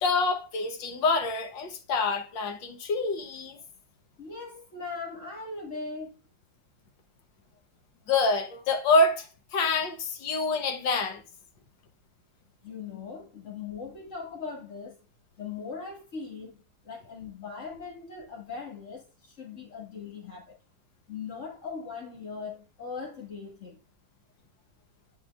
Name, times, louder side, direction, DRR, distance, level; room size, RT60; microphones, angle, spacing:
voice 1, 0.0-3.6 8.1-9.2 9.5-11.2, left 3 dB, 85° left, 1.7 m, -26 dB
voice 2, 4.2-6.1 12.6-15.0 15.4-20.5 21.1-23.8, left 5 dB, 40° left, 2.5 m, -39 dB
10.5 x 5.1 x 2.4 m
omnidirectional pair, 2.0 m